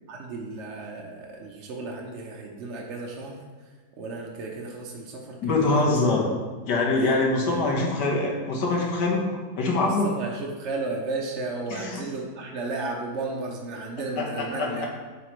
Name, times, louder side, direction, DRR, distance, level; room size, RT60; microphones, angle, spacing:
voice 1, 0.1-3.4 4.0-5.9 6.9-7.1 7.5-7.7 9.8-14.9, right 3 dB, 55° right, -1 dB, 0.9 m, -34 dB
voice 2, 5.4-6.3 6.7-10.1 11.7-12.1 14.2-14.7, left 2 dB, 85° left, -1 dB, 1.7 m, -24 dB
8.6 x 4.1 x 3.0 m, 1.4 s
omnidirectional pair, 1.8 m